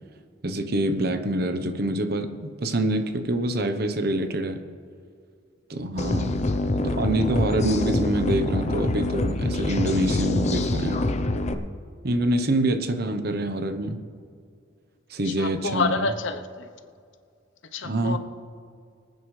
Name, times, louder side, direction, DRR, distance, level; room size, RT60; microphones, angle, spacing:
voice 1, 0.4-4.6 5.7-6.4 6.7-11.1 12.0-14.0 15.1-16.1 17.8-18.2, right 1 dB, 55° right, 8 dB, 1.0 m, -26 dB
sound 1, 6.0-11.5, left 2 dB, 35° left, 0.7 m, -25 dB
voice 2, 15.3-16.7 17.7-18.2, left 3 dB, 70° left, 9 dB, 0.9 m, -28 dB
24.0 x 9.2 x 3.3 m, 2.2 s
head